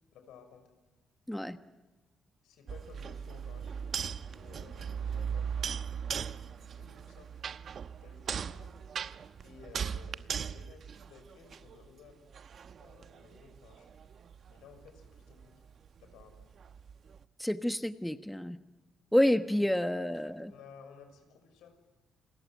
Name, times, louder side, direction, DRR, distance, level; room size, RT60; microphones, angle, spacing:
voice 1, 0.1-0.6 2.4-3.9 4.1-7.4 8.0-8.7 9.4-12.2 12.8-13.9 14.5-15.5 16.0-16.5 19.9-21.8, left 6 dB, 90° left, 6 dB, 6.3 m, -56 dB
sound 1, 2.7-11.9 12.3-17.2, right 7 dB, 55° right, 1.0 m, -39 dB
voice 2, 17.4-18.6 19.1-20.5, left 1 dB, 5° left, 9 dB, 1.2 m, -29 dB
29.0 x 21.5 x 9.4 m, 1.1 s
cardioid pair, 90°, 0 cm